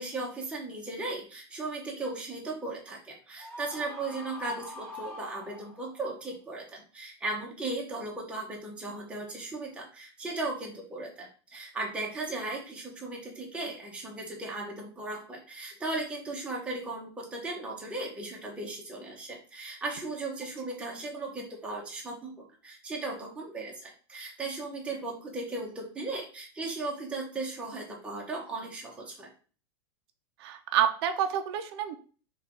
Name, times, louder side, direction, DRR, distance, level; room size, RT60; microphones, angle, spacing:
voice 1, 0.0-29.3, right 2 dB, 10° right, -2 dB, 0.7 m, -37 dB
Screaming, 3.4-6.1, left 1 dB, 10° left, 1.3 m, -43 dB
voice 2, 30.4-32.0, right 9 dB, 65° right, 7 dB, 0.4 m, -28 dB
3.2 x 2.2 x 3.6 m, 0.40 s
supercardioid pair, 140°, 14 cm